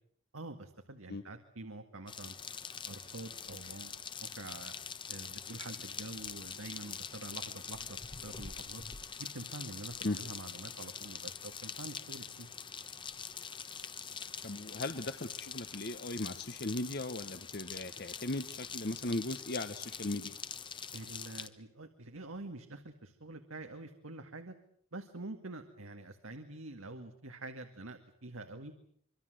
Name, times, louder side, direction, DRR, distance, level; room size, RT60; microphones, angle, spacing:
voice 1, 0.3-2.3 2.8-4.0 4.4-4.7 5.1-8.8 9.2-12.5 20.9-24.5 24.9-28.7, right 2 dB, 80° right, 5 dB, 2.1 m, -46 dB
sound 1, 2.1-21.5, left 6 dB, 25° left, 1.1 m, -44 dB
voice 2, 14.4-20.4, left 2 dB, 50° left, 10 dB, 1.1 m, -38 dB
25.5 x 24.5 x 7.8 m, 0.65 s
head